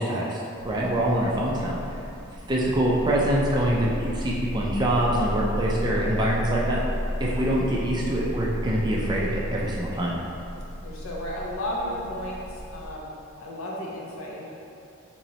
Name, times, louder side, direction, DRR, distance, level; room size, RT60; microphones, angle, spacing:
voice 1, 0.0-1.8 2.5-6.8 7.2-10.2, right 1 dB, 20° right, -4 dB, 0.3 m, -25 dB
sound 1, 0.6-12.9, equal, 40° left, 0.9 m, -33 dB
voice 2, 10.8-13.1 13.4-14.5, left 1 dB, 70° left, -4 dB, 0.7 m, -34 dB
3.0 x 2.8 x 4.0 m, 2.7 s
head